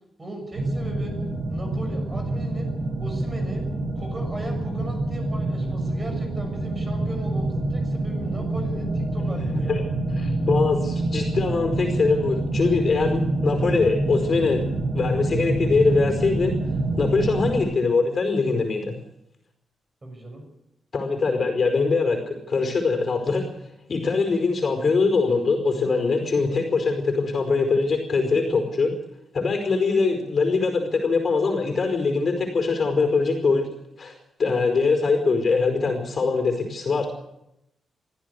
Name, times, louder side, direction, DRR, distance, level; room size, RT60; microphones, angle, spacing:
voice 1, 0.2-1.1 1.5-2.7 3.0-3.6 3.9-9.8 20.0-20.4, right 1 dB, 25° right, 4 dB, 6.7 m, -37 dB
sound 1, 0.5-17.6, right 2 dB, 60° right, 7.8 m, -26 dB
voice 2, 10.2-14.6 14.9-16.5 17.0-18.9 20.9-23.5 23.9-28.9 29.3-33.7 34.0-34.1 34.4-37.1, left 4 dB, 40° left, 5 dB, 4.9 m, -22 dB
23.5 x 14.5 x 8.4 m, 0.84 s
wide cardioid pair, 150°, 0 cm